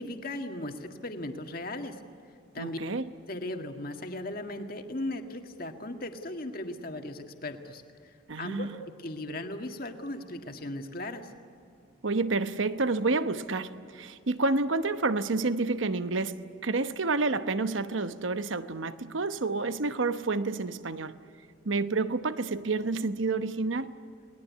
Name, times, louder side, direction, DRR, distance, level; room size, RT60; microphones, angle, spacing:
voice 1, 0.0-2.0 2.5-2.8 3.3-7.8 8.4-8.7 9.0-11.3, left 1 dB, 45° left, 1.9 m, -37 dB
voice 2, 2.6-3.1 8.3-8.8 12.0-21.2 21.6-23.9, right 3 dB, 80° right, 1.0 m, -29 dB
29.0 x 20.0 x 9.6 m
head